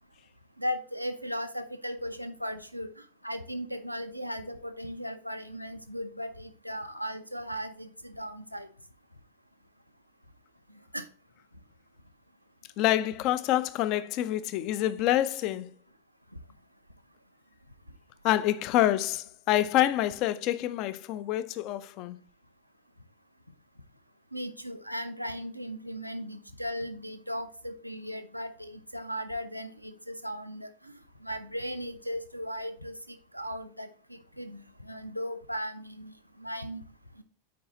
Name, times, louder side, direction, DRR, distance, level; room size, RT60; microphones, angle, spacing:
voice 1, 0.6-8.7 10.9-11.1 24.3-36.8 37.2-37.3, equal, 90° right, 0.7 m, -37 dB
voice 2, 12.8-15.7 18.2-22.2, left 13 dB, 40° left, 0.5 m, -27 dB
8.6 x 4.7 x 3.0 m
figure-of-eight pair, 90°, 0 cm